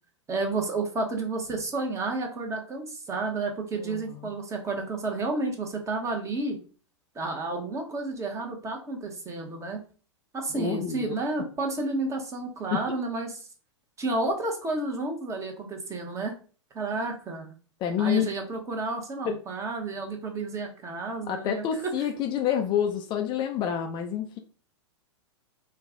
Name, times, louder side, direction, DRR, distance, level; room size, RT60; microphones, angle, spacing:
voice 1, 0.3-6.6 7.1-9.8 10.3-13.4 14.0-16.3 16.7-17.5 18.0-21.6, right 3 dB, 20° right, 2 dB, 1.1 m, -31 dB
voice 2, 3.7-4.3 10.5-11.2 12.7-12.8 17.8-18.3 19.3-19.4 21.3-24.4, left 9 dB, 30° left, 5 dB, 0.5 m, -28 dB
4.5 x 2.3 x 3.6 m, 0.39 s
figure-of-eight pair, 105°, 15 cm